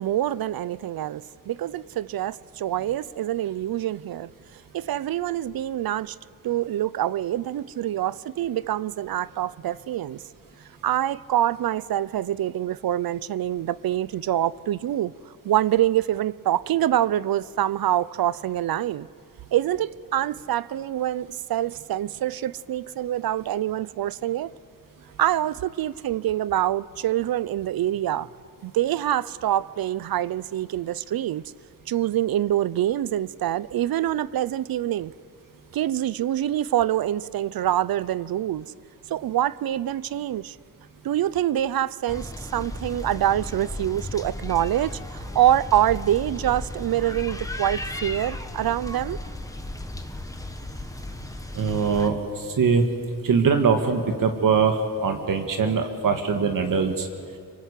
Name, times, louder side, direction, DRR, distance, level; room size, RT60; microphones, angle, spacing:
voice 1, 0.0-6.2 6.4-10.2 10.8-15.1 15.4-19.1 19.5-24.5 25.2-28.3 28.6-31.4 31.9-35.1 35.7-38.7 39.1-40.6 41.0-49.2, right 12 dB, 85° right, 0.7 m, -25 dB
sound 1, 42.1-52.1, left 1 dB, 10° left, 1.4 m, -35 dB
voice 2, 51.5-52.8 53.2-57.1, right 5 dB, 65° right, 1.9 m, -22 dB
26.0 x 24.5 x 8.3 m
wide cardioid pair, 140°, 35 cm